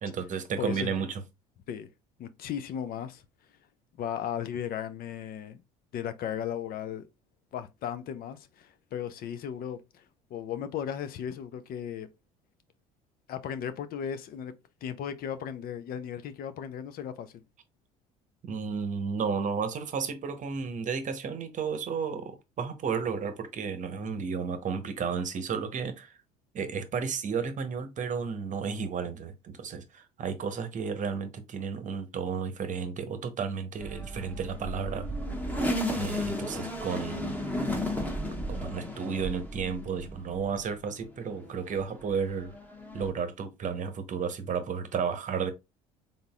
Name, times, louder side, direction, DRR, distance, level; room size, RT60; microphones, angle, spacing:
voice 1, 0.0-1.2 18.4-26.2 26.5-35.1 35.9-37.4 38.5-42.6 42.9-45.5, right 6 dB, 40° right, 0.9 m, -33 dB
voice 2, 0.6-0.9 1.7-1.9 2.2-3.2 4.0-5.6 5.9-7.1 7.5-10.0 10.3-12.1 13.3-14.5 14.8-17.4, left 9 dB, 50° left, 0.6 m, -36 dB
sound 1, 33.8-40.7 41.1-43.1, left 1 dB, 10° left, 1.2 m, -34 dB
3.9 x 3.7 x 2.3 m
hypercardioid pair, 65°, 19 cm